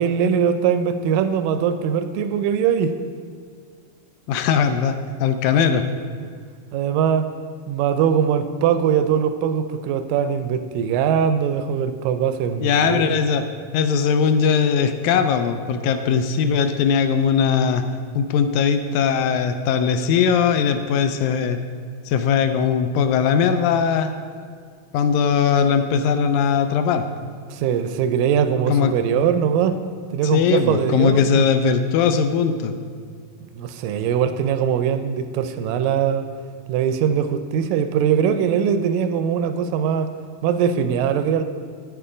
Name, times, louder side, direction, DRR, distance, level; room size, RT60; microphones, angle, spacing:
voice 1, 0.0-2.9 6.2-6.3 6.7-7.3 7.7-13.2 27.5-29.8 30.1-31.5 33.5-36.3 36.7-40.1 40.4-41.4, right 8 dB, 85° right, 10 dB, 2.2 m, -21 dB
voice 2, 4.3-5.8 12.6-13.4 13.7-17.8 18.1-21.6 22.0-24.1 24.9-27.3 28.7-28.9 30.2-32.8, left 6 dB, 85° left, 9 dB, 1.7 m, -19 dB
9.7 x 6.9 x 5.0 m, 2.1 s
omnidirectional pair, 3.9 m